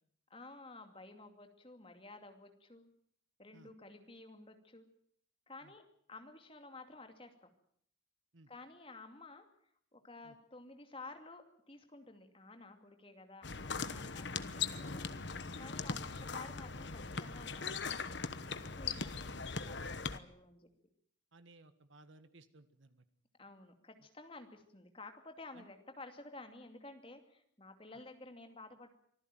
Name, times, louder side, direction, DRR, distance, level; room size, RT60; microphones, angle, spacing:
voice 1, 0.3-2.9 3.4-4.9 5.5-5.8 6.1-7.5 8.5-9.4 9.9-20.7 23.4-28.9, left 2 dB, 25° left, 6 dB, 2.6 m, -53 dB
sound 1, 13.4-20.2, left 5 dB, 60° left, 1.1 m, -40 dB
voice 2, 21.3-23.0 25.6-25.7, right 2 dB, 70° right, 11 dB, 1.7 m, -60 dB
25.0 x 15.0 x 9.1 m, 0.66 s
head